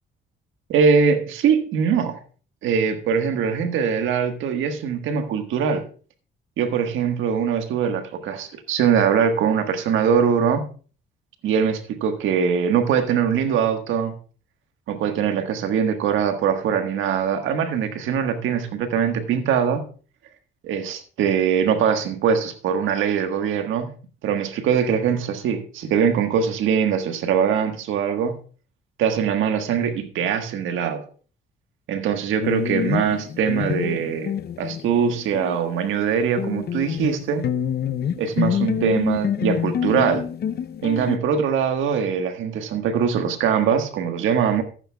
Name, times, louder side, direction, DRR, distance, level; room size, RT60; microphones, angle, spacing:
voice 1, 0.7-2.2 2.6-5.8 6.6-10.7 11.4-14.1 14.9-19.8 20.6-23.9 24.2-28.4 29.0-31.0 31.9-37.5 38.2-40.2 40.8-44.6, right 7 dB, 85° right, 7 dB, 1.4 m, -22 dB
sound 1, 32.4-35.7 35.9-41.2, left 8 dB, 55° left, 0.6 m, -27 dB
15.0 x 9.0 x 2.3 m, 0.39 s
cardioid pair, 90°, 20 cm